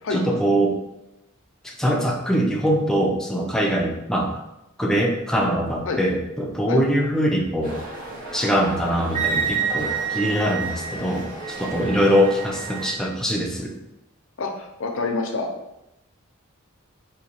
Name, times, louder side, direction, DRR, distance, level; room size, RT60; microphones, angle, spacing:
voice 1, 0.1-0.8 1.6-4.4 4.8-7.8 8.3-11.3 11.6-13.7, equal, 5° left, -1 dB, 0.4 m, -22 dB
sound 1, 7.6-12.9, right 2 dB, 70° right, 1.4 m, -36 dB
Wind instrument woodwind instrument, 9.1-13.0, right 7 dB, 35° right, 0.7 m, -29 dB
voice 2, 14.4-15.5, left 3 dB, 65° left, 3 dB, 0.6 m, -27 dB
4.0 x 2.7 x 2.9 m, 0.89 s
head